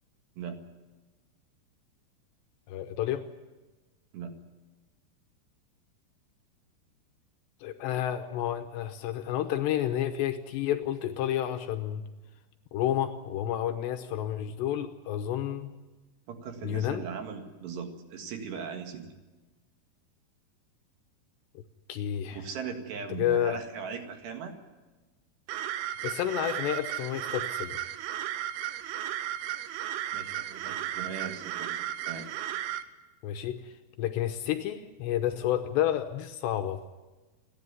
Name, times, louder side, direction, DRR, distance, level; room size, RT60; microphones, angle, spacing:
voice 1, 2.7-3.2 7.6-12.0 12.7-15.7 16.6-17.0 21.9-22.4 23.2-23.6 26.0-27.8 33.2-33.6 34.0-36.8, left 11 dB, 80° left, 7 dB, 2.8 m, -30 dB
voice 2, 16.3-19.1 22.3-24.6 30.1-32.3, right 6 dB, 65° right, 4 dB, 3.7 m, -39 dB
sound 1, 25.5-32.8, right 12 dB, 90° right, 3.4 m, -35 dB
29.0 x 10.5 x 9.6 m, 1.2 s
omnidirectional pair, 5.5 m